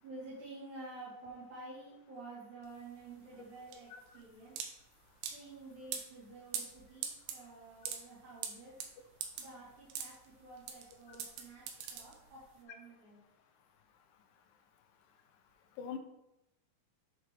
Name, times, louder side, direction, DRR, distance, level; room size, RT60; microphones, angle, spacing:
voice 1, 0.0-3.9 4.1-4.5 5.3-8.8 9.4-13.2, right 2 dB, 50° right, -11 dB, 3.8 m, -50 dB
sound 1, 2.6-12.6, right 7 dB, 80° right, 2.9 m, -44 dB
voice 2, 3.9-4.2 11.1-11.2 15.8-16.0, left 7 dB, 80° left, 5 dB, 2.0 m, -43 dB
9.9 x 5.9 x 3.1 m, 0.88 s
omnidirectional pair, 4.8 m